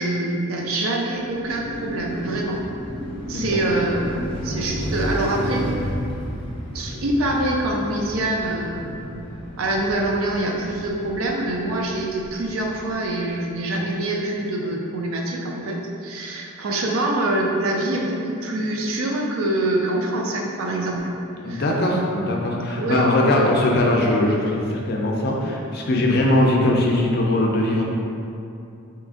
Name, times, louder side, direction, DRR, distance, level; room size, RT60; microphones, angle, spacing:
voice 1, 0.0-2.6 3.3-5.9 6.7-9.2 9.6-21.1 21.5-21.6 21.9-22.2 22.7-23.0, right 1 dB, 70° right, 0 dB, 0.4 m, -25 dB
Car passing by, 1.1-13.3, equal, 25° left, 0.7 m, -32 dB
voice 2, 3.3-3.7 21.4-27.8, left 1 dB, 45° left, -1 dB, 0.4 m, -20 dB
3.6 x 2.9 x 2.5 m, 2.6 s
head